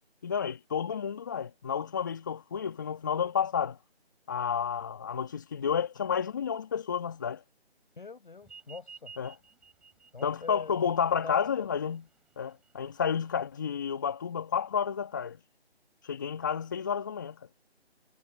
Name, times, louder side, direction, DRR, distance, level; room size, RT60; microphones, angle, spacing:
voice 1, 0.2-3.8 4.3-7.4 9.2-9.3 10.2-12.1 12.4-15.4 16.0-17.4, left 7 dB, 20° left, 1.9 m, -31 dB
voice 2, 8.0-9.1 10.1-11.8, left 4 dB, 50° left, 7.8 m, -45 dB
sound 1, 8.4-13.4, right 5 dB, 5° right, 5.3 m, -54 dB
figure-of-eight pair, 170°, 32 cm